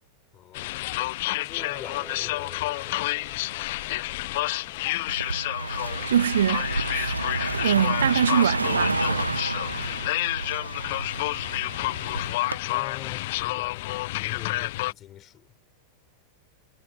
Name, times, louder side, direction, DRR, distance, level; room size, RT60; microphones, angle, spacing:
voice 1, 0.3-1.1 1.3-2.6 10.4-11.2 12.7-15.6, left 13 dB, 30° left, 5.3 m, -44 dB
sound 1, 0.5-14.9, left 19 dB, 50° left, 0.9 m, -29 dB
sound 2, 1.6-6.6, right 2 dB, 5° right, 5.9 m, -50 dB
Car passing by, 5.1-12.6, right 3 dB, 80° right, 1.2 m, -30 dB
voice 2, 6.1-7.2 7.5-9.0, right 9 dB, 65° right, 1.9 m, -24 dB
figure-of-eight pair, 90°, 0 cm